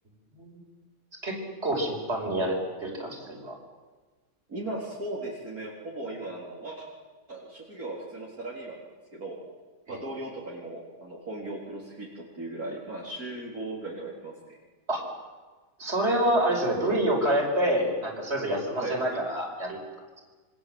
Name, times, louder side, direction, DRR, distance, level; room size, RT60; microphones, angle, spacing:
voice 1, 1.2-3.6 9.9-10.0 14.9-15.0 15.8-19.8, right 1 dB, 40° right, 1 dB, 5.8 m, -27 dB
voice 2, 4.5-6.9 7.3-8.8 9.1-9.4 9.9-14.3 18.7-19.0, right 2 dB, 60° right, -4 dB, 4.5 m, -37 dB
27.5 x 25.0 x 7.9 m, 1.3 s
omnidirectional pair, 1.8 m